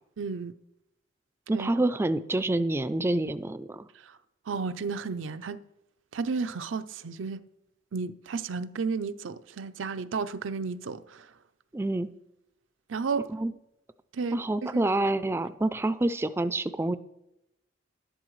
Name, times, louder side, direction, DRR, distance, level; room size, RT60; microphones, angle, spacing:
voice 1, 0.2-0.5 1.5-1.9 4.5-5.6 6.1-7.4 7.9-11.3 12.9-13.3 14.1-14.8, right 5 dB, 90° right, 0.5 m, -33 dB
voice 2, 1.5-3.9 11.7-12.1 13.3-13.5 14.3-17.0, right 2 dB, 15° right, 0.3 m, -27 dB
11.5 x 11.5 x 3.1 m
head